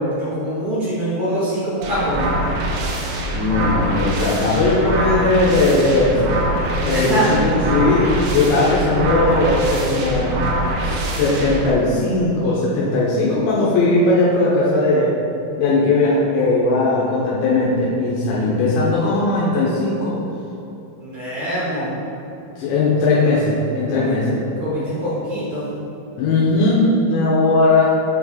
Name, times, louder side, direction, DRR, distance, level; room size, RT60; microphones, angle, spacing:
voice 1, 0.1-2.3 6.8-7.3 21.0-21.9 23.9-24.2 24.6-25.7, right 1 dB, 70° right, -12 dB, 1.2 m, -24 dB
sound 1, 1.8-11.7, right 1 dB, 90° right, 3.5 m, -23 dB
voice 2, 3.3-6.4 6.9-10.4 10.8-15.1 15.6-20.2 22.6-24.4 26.2-27.9, left 2 dB, 80° left, -6 dB, 3.1 m, -18 dB
7.8 x 4.5 x 4.3 m, 2.9 s
omnidirectional pair, 5.4 m